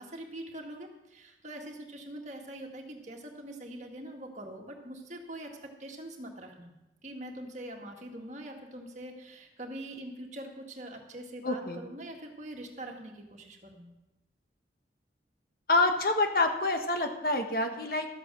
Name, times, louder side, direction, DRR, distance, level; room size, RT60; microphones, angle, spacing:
voice 1, 0.0-6.7 7.0-13.9, right 1 dB, 40° right, 1 dB, 1.8 m, -43 dB
voice 2, 11.4-11.8 15.7-18.1, left 2 dB, 55° left, 5 dB, 1.3 m, -27 dB
13.0 x 8.4 x 6.2 m, 0.96 s
head